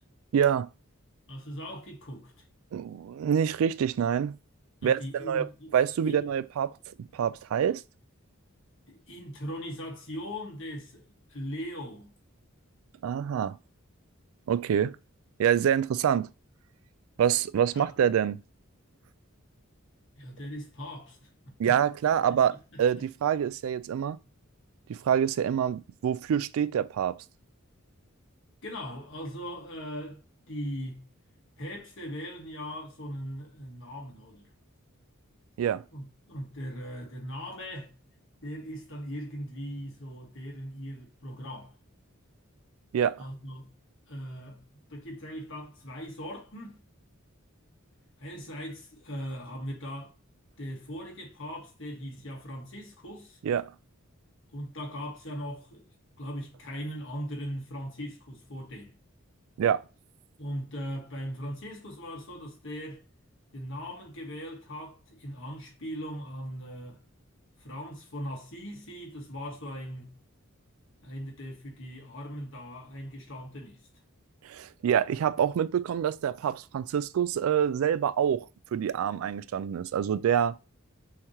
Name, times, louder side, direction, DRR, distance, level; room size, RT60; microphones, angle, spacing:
voice 1, 0.3-0.7 2.7-4.4 4.8-6.7 7.0-7.8 13.0-13.6 14.5-15.0 15.4-16.3 17.2-18.4 21.6-24.2 24.9-27.2 35.6-35.8 42.9-43.2 53.4-53.7 59.6-59.8 74.4-80.6, right 8 dB, 75° right, 0.3 m, -26 dB
voice 2, 1.3-2.3 4.8-5.7 6.0-6.2 8.9-12.1 17.7-17.9 20.1-21.8 22.3-22.4 22.7-23.0 28.6-30.2 30.5-31.1 31.6-34.5 35.9-37.9 38.4-41.7 43.2-43.7 44.1-46.8 48.2-50.1 50.6-53.4 54.5-55.9 56.2-58.9 60.4-63.0 63.5-67.0 67.6-70.2 71.0-73.8, equal, 65° left, 1.7 m, -39 dB
5.7 x 3.0 x 3.0 m
head